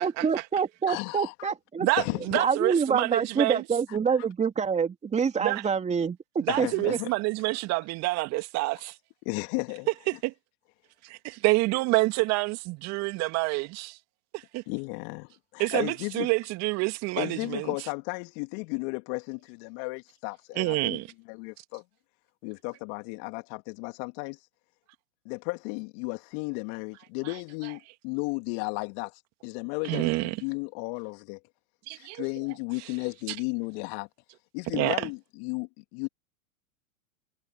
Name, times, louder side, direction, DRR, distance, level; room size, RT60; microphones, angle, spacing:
voice 1, 0.0-1.9 2.4-7.0, right 6 dB, 15° right, 2.7 m, -27 dB
voice 2, 0.9-1.5 2.0-2.4 3.9-4.0 6.5-7.1 9.2-9.9 14.7-16.3 17.2-21.0 21.3-21.8 22.4-24.4 25.2-31.4 31.9-34.1 34.5-36.1, left 33 dB, 45° left, 2.6 m, -34 dB
voice 3, 1.8-3.6 5.4-5.6 6.4-8.9 10.1-10.3 11.0-14.0 14.3-14.6 15.6-17.7 20.6-21.1 29.8-30.4 31.9-32.2 34.7-35.1, right 22 dB, 40° right, 2.4 m, -28 dB
hypercardioid pair, 105°, 41 cm